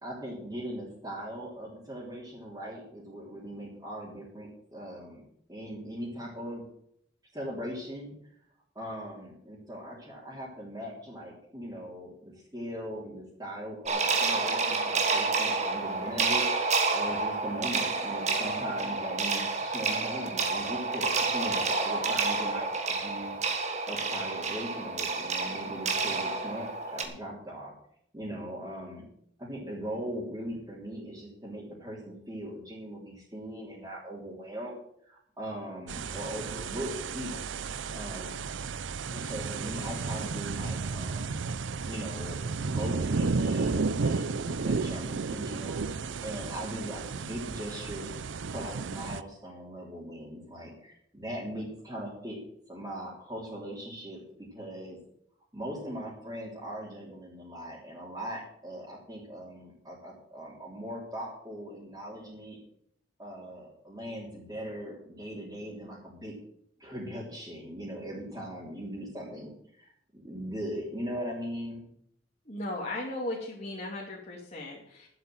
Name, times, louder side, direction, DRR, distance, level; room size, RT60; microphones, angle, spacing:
voice 1, 0.0-5.2 5.5-6.6 7.3-8.1 8.8-16.5 16.9-23.4 23.9-27.7 28.1-29.1 29.4-34.7 35.0-37.5 37.9-38.5 39.1-41.4 41.8-42.4 42.7-48.1 48.5-52.4 52.7-55.0 55.5-62.6 63.2-66.3 66.8-71.8, equal, 20° right, -8 dB, 3.5 m, -40 dB
sound 1, 13.9-27.0, right 4 dB, 40° right, 1.8 m, -29 dB
sound 2, 35.9-49.2, right 4 dB, 85° right, 0.6 m, -33 dB
voice 2, 72.5-75.1, left 1 dB, 35° left, -3 dB, 2.4 m, -36 dB
11.5 x 8.0 x 7.7 m, 0.70 s
head